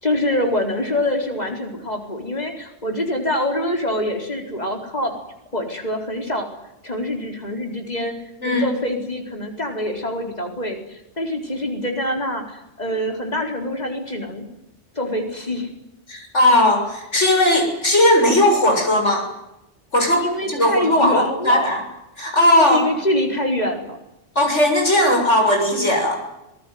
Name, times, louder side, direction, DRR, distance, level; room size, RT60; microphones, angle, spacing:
voice 1, 0.0-5.1 5.5-6.5 6.8-8.2 8.4-14.5 14.9-15.7 20.2-21.7 22.7-24.0, left 1 dB, 35° left, 3 dB, 4.5 m, -25 dB
voice 2, 16.1-19.3 19.9-21.8 22.2-22.8 24.4-26.2, left 1 dB, 80° left, 3 dB, 7.4 m, -17 dB
26.5 x 19.5 x 9.5 m, 0.91 s
omnidirectional pair, 1.2 m